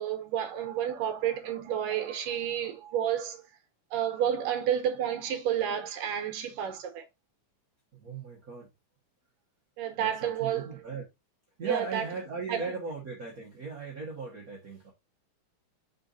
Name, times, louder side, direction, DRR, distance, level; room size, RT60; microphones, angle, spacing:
voice 1, 0.0-3.4 3.9-7.0 9.8-10.7 11.6-12.1 12.5-12.6, right 9 dB, 90° right, 2.6 m, -30 dB
voice 2, 7.9-8.7 10.0-11.0 11.6-14.9, right 4 dB, 50° right, 1.1 m, -38 dB
5.6 x 4.1 x 4.0 m
omnidirectional pair, 3.7 m